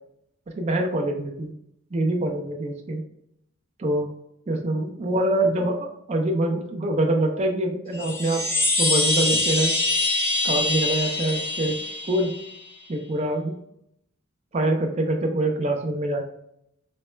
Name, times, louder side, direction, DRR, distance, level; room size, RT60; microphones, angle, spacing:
voice 1, 0.6-1.5 1.9-3.0 3.8-4.1 4.5-8.4 8.8-9.7 10.4-11.8 12.1-12.3 12.9-13.5 14.5-16.2, right 1 dB, 30° right, 1 dB, 0.4 m, -24 dB
Chime, 7.9-12.6, left 2 dB, 10° left, 0.6 m, -24 dB
4.0 x 2.2 x 3.2 m, 0.76 s
head